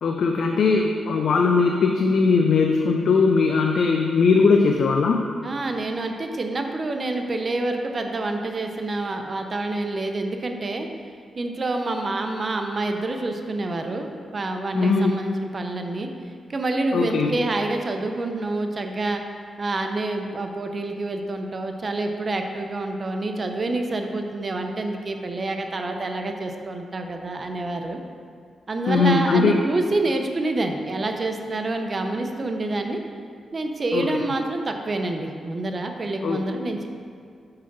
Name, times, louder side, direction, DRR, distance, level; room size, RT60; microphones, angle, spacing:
voice 1, 0.0-5.2 14.7-15.1 16.9-17.4 28.9-29.6 33.9-34.2 36.2-36.5, left 4 dB, 70° left, 3 dB, 0.4 m, -20 dB
voice 2, 5.4-10.9 11.4-16.1 16.5-19.2 19.6-28.0 28.7-33.0 33.5-36.9, right 2 dB, 40° right, 4 dB, 0.6 m, -27 dB
5.7 x 4.8 x 6.0 m, 2.2 s
cardioid pair, 100°, 0 cm